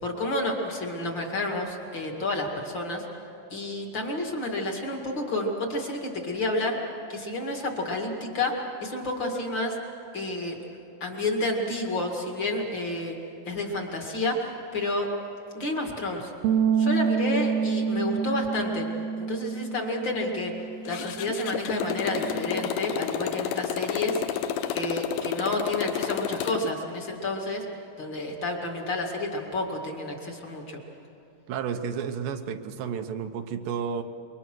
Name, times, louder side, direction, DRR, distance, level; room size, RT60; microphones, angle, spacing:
voice 1, 0.0-3.0 3.5-6.8 7.1-9.8 10.1-10.6 11.0-13.2 13.5-15.1 15.5-16.3 16.8-18.9 19.3-20.5 20.8-24.2 24.7-27.6 28.0-30.8, left 2 dB, 40° left, 2 dB, 2.5 m, -30 dB
sound 1, 16.4-22.7, right 6 dB, 70° right, 1.7 m, -28 dB
Motorcycle, 20.9-26.7, left 9 dB, 80° left, 2.3 m, -30 dB
voice 2, 31.5-34.0, right 7 dB, 85° right, 7 dB, 2.7 m, -31 dB
26.5 x 23.0 x 6.2 m, 2.8 s
omnidirectional pair, 3.9 m